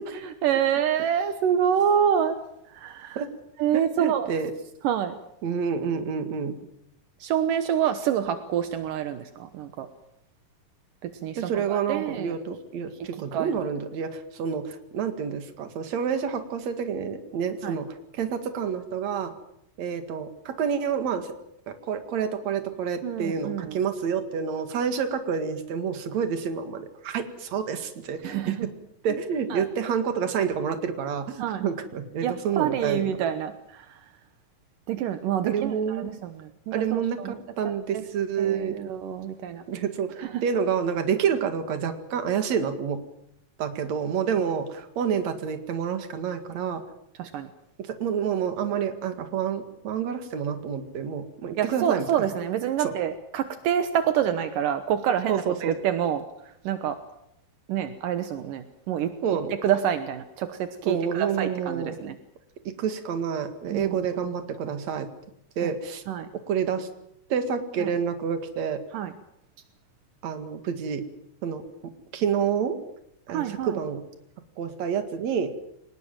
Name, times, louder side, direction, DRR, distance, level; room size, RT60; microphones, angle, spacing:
voice 1, 0.1-2.4 2.7-3.2 3.6-4.3 4.8-5.2 7.2-9.9 11.2-11.4 11.7-12.3 13.3-13.6 17.6-17.8 23.0-23.8 28.2-28.7 29.5-29.7 31.4-31.6 32.2-33.5 34.9-37.4 37.6-38.0 38.4-39.6 40.2-40.4 47.2-47.5 51.6-56.2 56.7-57.0 57.7-59.1 59.6-62.2 63.7-64.0 66.1-66.3 67.8-67.9 68.9-69.1 73.3-73.8, right 9 dB, 80° right, 9 dB, 2.7 m, -27 dB
voice 2, 3.7-4.5 5.4-6.6 11.4-19.3 19.8-21.3 21.7-28.7 29.0-33.1 35.5-36.1 36.7-38.8 39.7-43.0 43.6-46.8 47.8-52.1 52.8-52.9 55.3-55.8 59.2-59.5 60.9-62.0 62.6-65.1 65.6-66.0 66.5-66.9 67.3-68.8 70.2-71.1 71.4-71.6 72.1-72.8 73.3-74.0 74.6-75.5, right 7 dB, 55° right, 8 dB, 3.1 m, -28 dB
24.0 x 20.0 x 7.5 m, 0.78 s
omnidirectional pair, 3.9 m